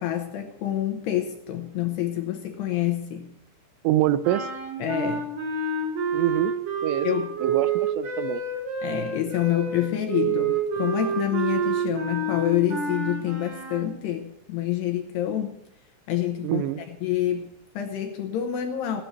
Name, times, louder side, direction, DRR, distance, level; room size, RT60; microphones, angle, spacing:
voice 1, 0.0-3.3 4.8-5.3 7.0-7.4 8.8-15.6 16.1-19.0, left 12 dB, 75° left, 5 dB, 2.7 m, -27 dB
voice 2, 3.8-4.5 6.1-6.5 6.8-7.1 7.4-8.4 16.4-16.8, right 13 dB, 80° right, 11 dB, 2.6 m, -25 dB
sound 1, 4.2-13.9, right 5 dB, 60° right, 5.7 m, -28 dB
17.5 x 6.5 x 9.0 m, 0.76 s
omnidirectional pair, 5.6 m